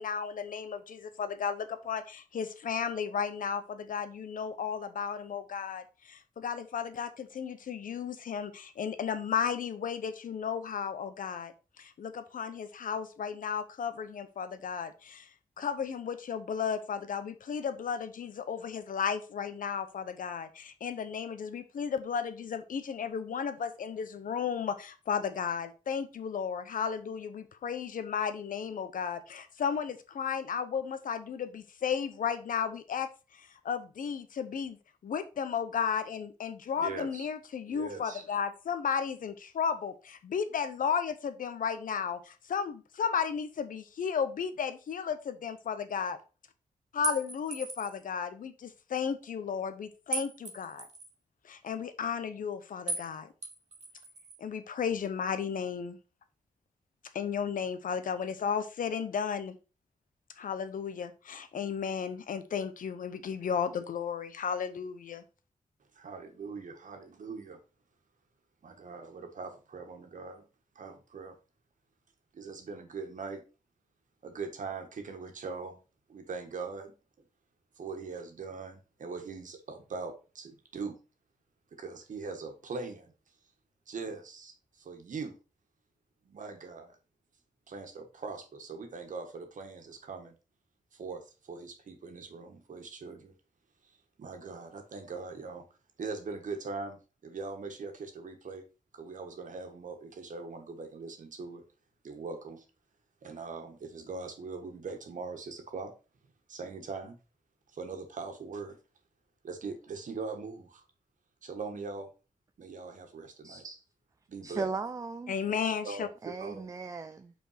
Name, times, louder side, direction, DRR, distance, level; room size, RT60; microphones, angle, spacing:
voice 1, 0.0-15.3 15.6-34.8 35.0-46.2 46.9-50.9 51.4-53.3 54.4-56.0 57.1-59.6 60.4-65.2 115.3-116.1, left 7 dB, 90° left, 0.8 m, -34 dB
voice 2, 36.8-37.3 37.7-38.2 65.9-67.6 68.6-70.4 70.7-71.4 72.3-73.4 74.2-75.8 76.1-76.9 77.8-81.0 81.8-83.1 83.9-85.3 86.2-87.0 87.7-90.3 90.9-93.3 94.2-95.6 96.0-98.6 98.9-101.6 102.0-102.6 103.2-105.9 106.5-107.2 107.7-108.8 109.4-110.8 111.4-112.1 112.6-113.8 114.3-114.7 115.8-116.7, right 4 dB, 70° right, 1.5 m, -41 dB
sound 1, 47.0-48.0 50.1-51.1 52.9-53.1 53.4-54.4, right 3 dB, 55° right, 1.3 m, -37 dB
voice 3, 114.4-115.3 116.2-117.3, right 4 dB, 25° right, 0.4 m, -37 dB
5.6 x 4.5 x 5.6 m
wide cardioid pair, 140°, 14 cm